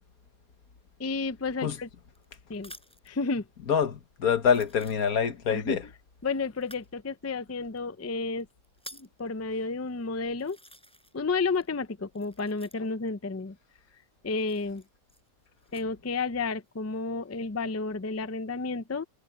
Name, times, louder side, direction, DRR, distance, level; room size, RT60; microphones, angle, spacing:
voice 1, 1.0-1.9 2.5-2.7 3.1-3.4 5.5-5.8 6.2-8.5 8.9-10.6 11.1-13.6 14.2-14.8 15.7-19.0, left 4 dB, 25° left, 0.3 m, -31 dB
sound 1, 1.5-3.2 3.9-4.0 4.4-5.5 6.6-6.9 7.8-7.9 8.4-9.2 9.9-10.0 10.4-11.3 11.6-13.1 14.3-15.9 16.5-17.0, equal, 5° left, 5.3 m, -51 dB
voice 2, 3.7-5.8, left 7 dB, 80° left, 1.8 m, -25 dB
omnidirectional pair, 1.5 m